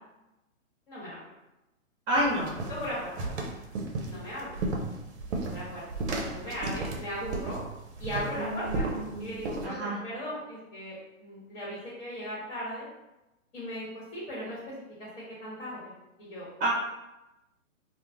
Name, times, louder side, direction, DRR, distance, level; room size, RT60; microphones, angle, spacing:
voice 1, 0.9-1.2 2.7-3.3 4.0-4.6 5.5-5.8 6.3-7.6 8.0-12.8 13.5-14.7 15.0-15.1 15.4-15.9 16.2-16.5, equal, 50° left, -8 dB, 1.3 m, -37 dB
voice 2, 2.1-2.5 8.3-10.0 16.6-16.7, right 1 dB, 10° right, -6 dB, 0.7 m, -30 dB
sound 1, 2.1-9.6, right 2 dB, 55° right, 0.6 m, -35 dB
3.0 x 2.1 x 2.5 m, 0.97 s
hypercardioid pair, 155°, 40 cm